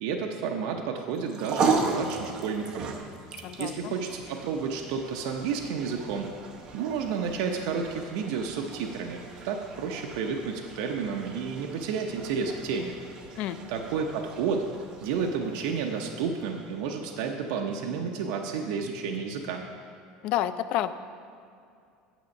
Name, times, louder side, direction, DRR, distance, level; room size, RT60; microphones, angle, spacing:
voice 1, 0.0-2.9 3.6-6.3 6.7-12.9 13.7-14.7 15.0-19.6, right 6 dB, 70° right, 2 dB, 0.7 m, -31 dB
sound 1, 1.1-17.6, right 4 dB, 35° right, 0.8 m, -36 dB
voice 2, 3.4-3.9 13.4-13.6 20.2-20.9, left 12 dB, 50° left, 13 dB, 0.4 m, -29 dB
9.2 x 7.2 x 5.2 m, 2.4 s
cardioid pair, 160°, 2 cm